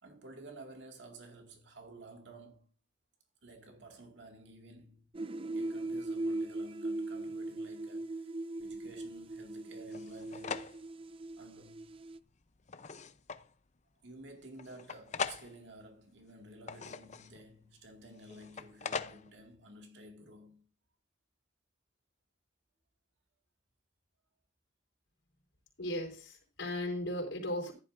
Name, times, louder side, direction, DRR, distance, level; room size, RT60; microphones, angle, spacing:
voice 1, 0.0-2.7 3.4-5.1 5.5-8.3 8.6-10.7 11.4-11.9 14.0-20.7, right 1 dB, 70° right, 2.1 m, -53 dB
sound 1, 5.1-12.2, right 2 dB, 30° right, 0.5 m, -39 dB
sound 2, 8.6-9.4 9.9-10.9 11.6-11.7 12.3-13.5 14.6-15.6 16.4-17.5 18.2-19.4, left 5 dB, 40° left, 0.6 m, -41 dB
voice 2, 25.8-27.7, left 1 dB, 85° left, 4.5 m, -36 dB
14.5 x 11.5 x 2.6 m
head